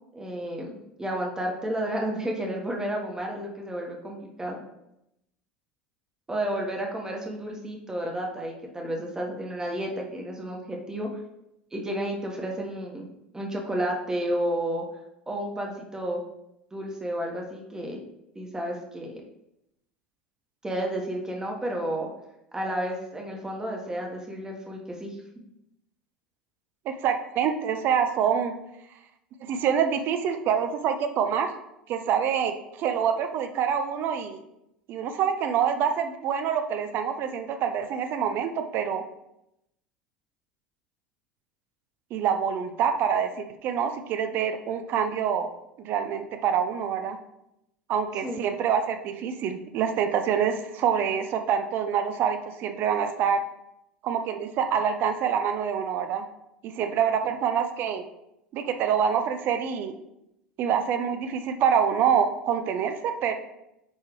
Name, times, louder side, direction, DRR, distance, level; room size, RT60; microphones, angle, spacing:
voice 1, 0.1-4.6 6.3-11.1 11.7-13.1 13.3-14.8 15.3-16.2 16.7-18.0 18.3-19.2 20.6-22.1 22.5-25.1 48.2-48.4, right 1 dB, 15° right, 0 dB, 1.4 m, -31 dB
voice 2, 26.8-28.6 29.5-31.5 31.9-34.4 34.9-39.0 42.1-45.5 45.8-47.2 47.9-53.4 54.0-56.3 56.6-58.0 58.5-59.9 60.6-63.3, right 7 dB, 45° right, 7 dB, 0.7 m, -26 dB
9.5 x 3.6 x 3.2 m, 0.85 s
figure-of-eight pair, 75°, 5 cm